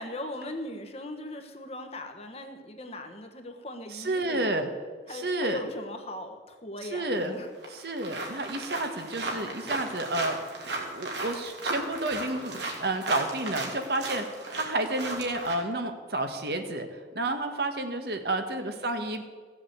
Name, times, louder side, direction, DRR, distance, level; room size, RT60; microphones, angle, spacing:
voice 1, 0.0-4.5 5.1-7.5, left 1 dB, 35° left, 5 dB, 1.3 m, -39 dB
voice 2, 3.9-4.7 5.1-5.6 6.8-7.3 7.7-10.4 10.6-14.2 14.5-16.9 17.1-19.2, right 2 dB, 60° right, 6 dB, 1.4 m, -30 dB
sound 1, 7.2-7.3 7.6-15.5, right 2 dB, 80° right, 2.9 m, -36 dB
15.5 x 7.6 x 8.0 m, 1.5 s
head